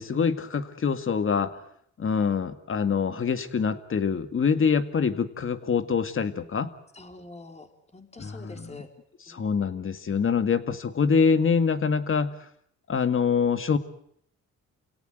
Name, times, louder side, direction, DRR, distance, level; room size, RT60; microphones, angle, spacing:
voice 1, 0.0-1.5 2.0-6.7 8.2-8.5 9.3-12.3 12.9-13.8, left 6 dB, 45° left, 10 dB, 2.1 m, -25 dB
voice 2, 6.9-8.9 9.3-9.4, left 2 dB, 20° left, 5 dB, 4.2 m, -46 dB
29.5 x 17.5 x 9.3 m, 0.70 s
cardioid pair, 90°, 30 cm